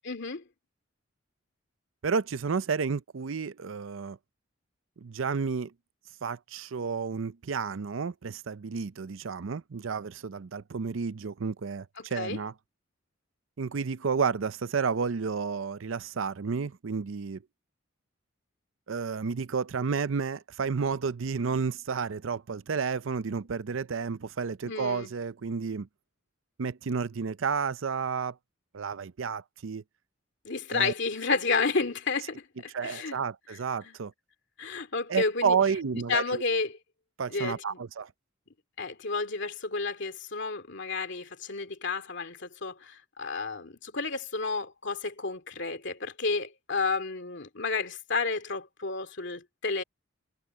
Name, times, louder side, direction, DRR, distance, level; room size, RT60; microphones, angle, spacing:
voice 1, 0.0-0.4 12.0-12.4 24.6-25.1 30.4-33.2 33.8-34.0 34.6-35.6 36.1-36.8 37.3-37.8 38.8-49.8, left 4 dB, 60° left, 2.6 m, -31 dB
voice 2, 2.0-4.2 5.0-5.7 6.2-12.5 13.6-17.4 18.9-25.9 26.6-28.4 28.7-29.8 30.7-30.9 32.7-34.1 35.1-36.4 37.2-38.1, right 5 dB, 70° right, 0.6 m, -31 dB
head